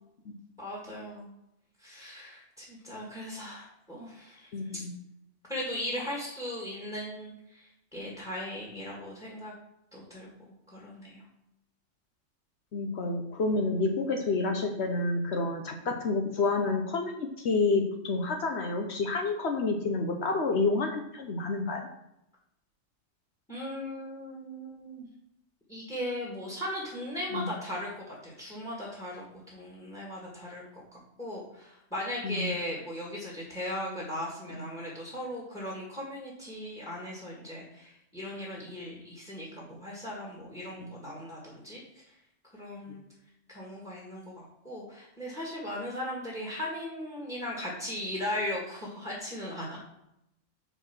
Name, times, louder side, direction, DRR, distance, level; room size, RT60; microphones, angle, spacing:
voice 1, 0.6-1.3 1.8-4.8 5.5-9.5 9.9-11.2 23.5-25.1 25.7-42.1 42.5-43.0 43.5-49.8, left 1 dB, 5° left, -5 dB, 1.7 m, -38 dB
voice 2, 4.5-4.9 12.7-21.9 27.3-27.5 32.2-32.4, left 3 dB, 60° left, 3 dB, 1.0 m, -29 dB
5.4 x 4.8 x 5.8 m, 0.82 s
omnidirectional pair, 1.4 m